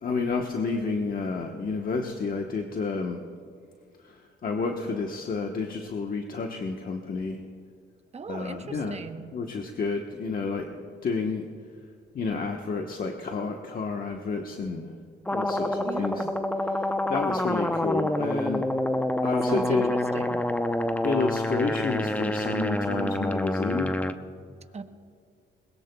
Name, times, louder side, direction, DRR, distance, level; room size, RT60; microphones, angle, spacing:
voice 1, 0.0-3.2 4.4-7.4 8.3-9.0 9.3-11.4 12.1-14.9 15.3-16.2 17.1-18.6 19.2-19.9 21.0-23.9, left 4 dB, 45° left, 2 dB, 1.1 m, -30 dB
voice 2, 8.1-9.3 15.8-16.3 19.2-20.4 24.7-24.8, right 5 dB, 35° right, 8 dB, 1.0 m, -37 dB
sound 1, 15.3-24.1, left 1 dB, 5° left, 0.7 m, -27 dB
21.5 x 21.0 x 2.3 m, 2.3 s
cardioid pair, 90°, 20 cm